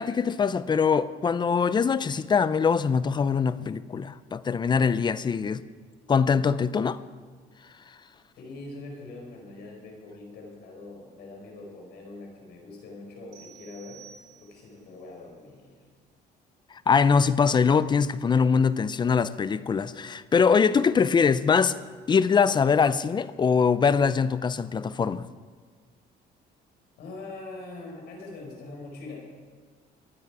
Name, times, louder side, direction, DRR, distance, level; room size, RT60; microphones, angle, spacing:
voice 1, 0.0-5.6 6.1-7.0 16.9-21.8 22.1-25.2, left 6 dB, 25° left, 0.5 m, -23 dB
voice 2, 8.4-14.1 14.4-15.8 27.0-29.2, left 2 dB, 75° left, 4.6 m, -43 dB
sound 1, 13.3-14.9, right 8 dB, 90° right, 3.6 m, -51 dB
23.5 x 8.5 x 4.9 m
cardioid pair, 110°, 17 cm